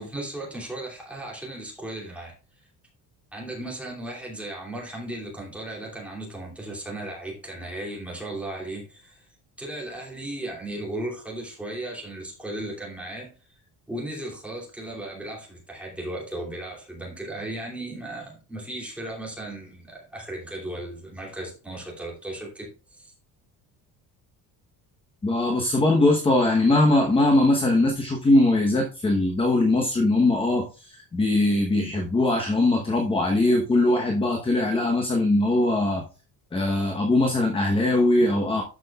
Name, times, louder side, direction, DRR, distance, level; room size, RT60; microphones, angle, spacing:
voice 1, 0.0-2.3 3.3-9.2 9.6-13.3 13.9-23.1, right 1 dB, 5° right, 2.6 m, -36 dB
voice 2, 25.2-36.0 36.5-38.6, left 2 dB, 15° left, 1.0 m, -21 dB
12.5 x 6.1 x 2.4 m
cardioid pair, 175°, 39 cm